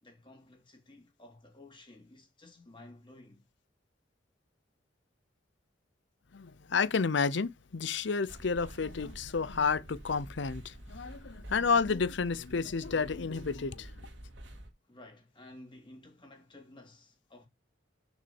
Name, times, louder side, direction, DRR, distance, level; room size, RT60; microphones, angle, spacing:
voice 1, 0.0-3.4 14.9-17.5, left 2 dB, 25° left, 3.2 m, -54 dB
voice 2, 6.3-13.9, left 5 dB, 70° left, 0.7 m, -31 dB
sound 1, 8.3-14.7, right 1 dB, 75° right, 2.4 m, -48 dB
6.9 x 6.0 x 7.1 m
head